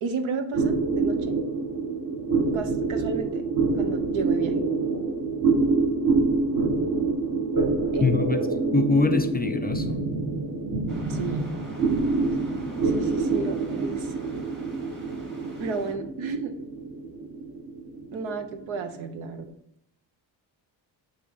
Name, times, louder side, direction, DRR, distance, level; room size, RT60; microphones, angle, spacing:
voice 1, 0.0-1.4 2.5-3.4 3.8-4.6 7.9-8.2 11.1-11.5 12.8-14.1 15.6-16.5 18.1-19.5, right 4 dB, 75° right, 8 dB, 0.9 m, -33 dB
sound 1, 0.5-19.3, right 3 dB, 40° right, 1.3 m, -26 dB
voice 2, 8.0-8.4 8.7-10.0, left 5 dB, 20° left, 6 dB, 0.4 m, -24 dB
sound 2, 10.9-15.9, right 1 dB, 20° right, 1.9 m, -44 dB
7.9 x 3.2 x 4.1 m, 0.76 s
cardioid pair, 80°, 47 cm